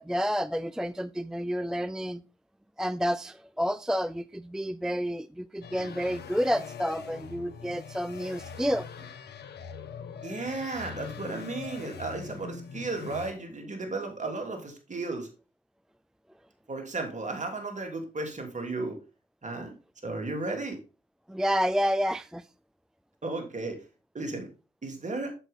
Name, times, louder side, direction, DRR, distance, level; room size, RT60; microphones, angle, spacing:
voice 1, 0.0-2.2 2.8-8.9 21.3-22.5, equal, 5° right, 0.4 m, -29 dB
sound 1, 5.6-13.3, left 6 dB, 70° left, 1.1 m, -42 dB
voice 2, 10.2-15.3 16.7-19.0 19.4-19.7 20.0-20.8 23.2-23.8 24.1-24.5 24.8-25.3, right 3 dB, 45° right, 3.4 m, -34 dB
8.1 x 7.3 x 3.7 m
supercardioid pair, 45°, 18 cm